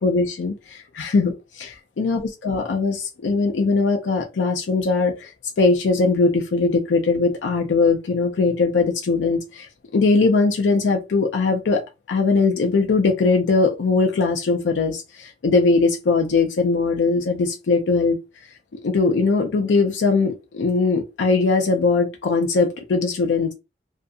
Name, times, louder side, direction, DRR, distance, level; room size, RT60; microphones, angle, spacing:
voice 1, 0.0-5.3 5.6-11.8 12.1-18.2 18.7-23.5, left 3 dB, 80° left, 0.4 m, -20 dB
2.5 x 2.4 x 2.5 m
head